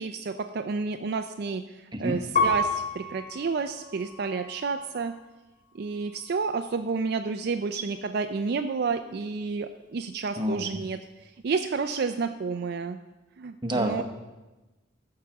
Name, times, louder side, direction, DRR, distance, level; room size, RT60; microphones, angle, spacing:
voice 1, 0.0-1.6 2.0-5.1 5.7-11.0 11.4-13.0 13.4-14.0, right 4 dB, 55° right, 7 dB, 0.4 m, -30 dB
voice 2, 1.9-2.2 10.4-10.7 13.6-14.0, equal, 25° right, 5 dB, 0.9 m, -28 dB
Piano, 2.4-5.1 5.7-6.4, left 2 dB, 45° left, 1.8 m, -31 dB
13.5 x 4.8 x 7.0 m, 1.1 s
head